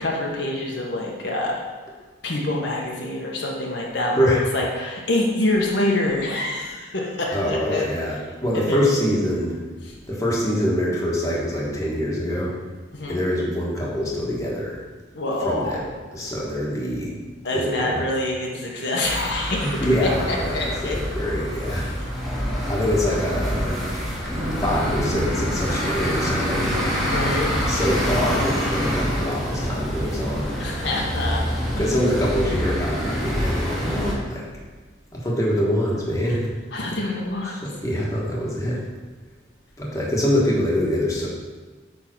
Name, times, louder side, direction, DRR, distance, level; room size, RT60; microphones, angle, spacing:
voice 1, 0.0-1.6 2.2-7.9 8.5-8.8 9.8-9.9 12.9-13.2 15.1-15.9 17.4-19.7 20.0-21.0 22.0-22.1 27.0-27.5 30.6-31.8 36.7-37.5, left 1 dB, 60° left, -2 dB, 1.2 m, -26 dB
voice 2, 7.3-9.6 10.1-12.5 13.1-14.8 15.4-15.8 16.1-17.1 17.5-18.0 19.6-21.9 22.7-23.8 24.3-26.8 27.7-30.5 31.8-34.4 35.1-36.5 37.5-38.8 39.8-41.3, equal, 15° left, -5 dB, 1.5 m, -24 dB
sound 1, 19.0-34.1, equal, ahead, 1.5 m, -27 dB
sound 2, 24.4-32.3, equal, 40° right, 2.7 m, -32 dB
8.8 x 3.8 x 6.0 m, 1.3 s
head